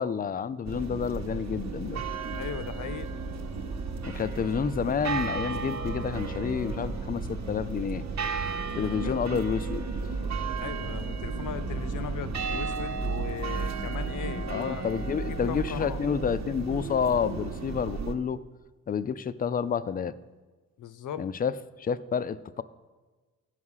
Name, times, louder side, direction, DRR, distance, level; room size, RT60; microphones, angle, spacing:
voice 1, 0.0-2.0 4.0-8.0 8.8-9.9 14.5-18.4 18.9-20.2 21.2-22.6, left 7 dB, 30° left, 16 dB, 0.4 m, -29 dB
sound 1, 0.6-18.1, right 4 dB, 55° right, 1.0 m, -33 dB
voice 2, 2.4-3.2 9.0-9.2 10.6-14.8 15.2-16.0 20.8-21.3, left 9 dB, 65° left, 13 dB, 0.7 m, -38 dB
12.0 x 4.8 x 5.6 m, 1.3 s
cardioid pair, 80°, 33 cm